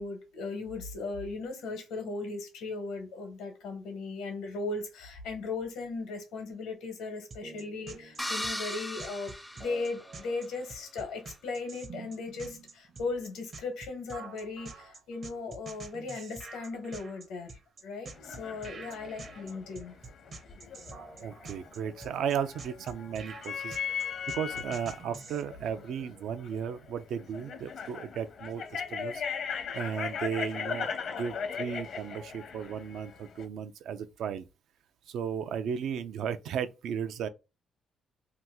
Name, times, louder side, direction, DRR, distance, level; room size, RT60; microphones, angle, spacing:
voice 1, 0.0-20.0, left 3 dB, 90° left, 1.1 m, -37 dB
sound 1, 7.3-25.4, right 4 dB, 50° right, 0.7 m, -47 dB
sound 2, 8.2-10.4, equal, 5° left, 0.4 m, -37 dB
sound 3, 18.1-33.5, left 6 dB, 65° left, 0.7 m, -39 dB
voice 2, 21.2-29.2 29.7-34.5 35.1-37.3, right 8 dB, 75° right, 0.4 m, -35 dB
2.8 x 2.3 x 3.5 m
cardioid pair, 90°, 0 cm